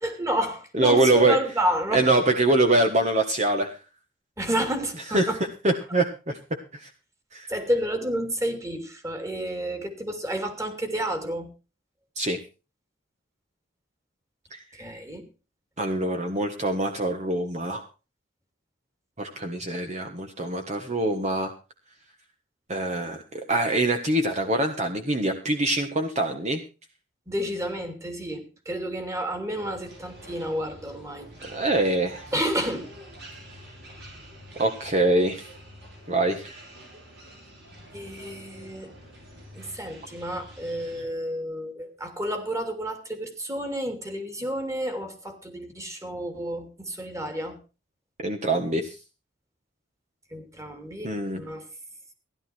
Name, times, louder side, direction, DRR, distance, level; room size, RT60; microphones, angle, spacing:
voice 1, 0.0-2.1 4.4-5.4 7.5-11.5 14.7-15.2 27.3-31.3 32.3-32.9 37.9-38.9 39.5-47.6 50.3-51.7, equal, 15° right, 7 dB, 2.9 m, -30 dB
voice 2, 0.7-1.4 1.9-3.7 5.1-5.3 5.6-6.4 6.7-6.9 7.3-7.5 12.2-12.4 14.5-14.6 15.8-17.8 19.2-21.5 22.7-26.6 31.4-32.2 34.6-35.5 36.1-36.6 48.2-48.9 51.0-51.4, right 2 dB, 35° right, 5 dB, 1.5 m, -24 dB
sound 1, 29.6-41.0, equal, 55° right, 7.1 m, -47 dB
16.0 x 11.5 x 4.5 m, 0.32 s
head